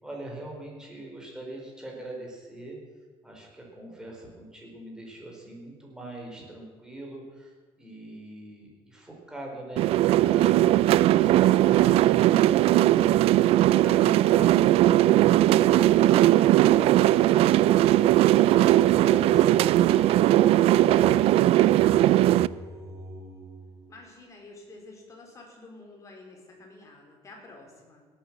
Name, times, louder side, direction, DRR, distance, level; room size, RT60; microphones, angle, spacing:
voice 1, 0.0-2.8 3.2-7.5 7.8-13.2, right 1 dB, 5° right, -1 dB, 4.3 m, -41 dB
sound 1, 9.8-22.5, right 14 dB, 65° right, 0.4 m, -19 dB
Singing, 20.7-24.3, right 1 dB, 35° right, 3.4 m, -46 dB
voice 2, 23.9-28.1, left 2 dB, 30° left, 0 dB, 4.5 m, -49 dB
17.5 x 9.1 x 7.4 m, 1.4 s
cardioid pair, 130°, 11 cm